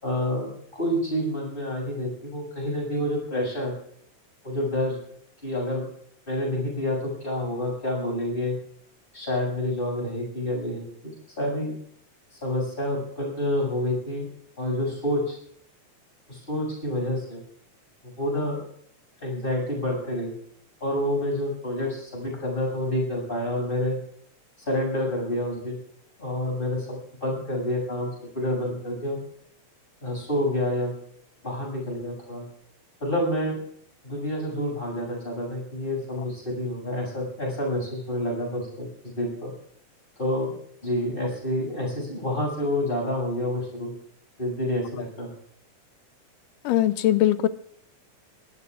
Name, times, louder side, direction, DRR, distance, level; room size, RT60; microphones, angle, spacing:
voice 1, 0.0-3.7 4.4-5.0 5.4-5.9 6.3-8.6 9.1-10.8 11.4-11.7 12.3-14.2 14.6-15.4 16.3-17.4 18.0-18.6 19.2-20.3 20.8-24.0 24.7-25.8 26.2-29.2 30.0-30.9 31.4-32.4 33.0-33.6 34.0-38.9 39.2-39.5 40.2-40.5 40.8-43.9 44.4-45.3, left 1 dB, 15° left, -1 dB, 7.5 m, -28 dB
voice 2, 46.7-47.5, left 13 dB, 85° left, 13 dB, 2.3 m, -20 dB
25.0 x 18.0 x 2.5 m, 0.66 s
omnidirectional pair, 3.7 m